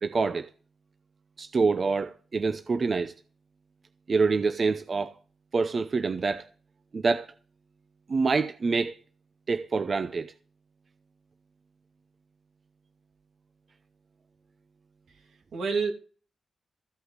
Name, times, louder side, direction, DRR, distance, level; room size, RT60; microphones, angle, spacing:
voice 1, 0.0-0.5 1.4-3.1 4.1-5.1 5.5-6.5 6.9-7.3 8.1-9.0 9.5-10.3, right 4 dB, 40° right, 0.6 m, -26 dB
voice 2, 15.1-15.9, right 5 dB, 80° right, 2.8 m, -30 dB
14.5 x 5.6 x 8.2 m
wide cardioid pair, 125°, 0 cm